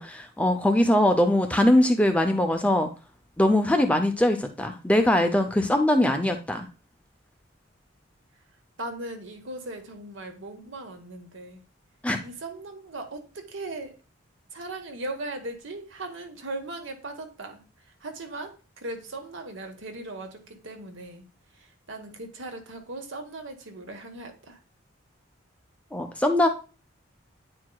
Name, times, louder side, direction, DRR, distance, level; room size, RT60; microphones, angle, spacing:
voice 1, 0.0-2.9 3.4-6.7 12.0-12.2 25.9-26.5, left 1 dB, 5° left, 6 dB, 0.4 m, -22 dB
voice 2, 8.8-11.6 12.2-14.0 14.5-17.6 18.0-21.2 21.6-24.6, right 2 dB, 70° right, 5 dB, 1.2 m, -38 dB
9.4 x 4.5 x 2.2 m, 0.34 s
head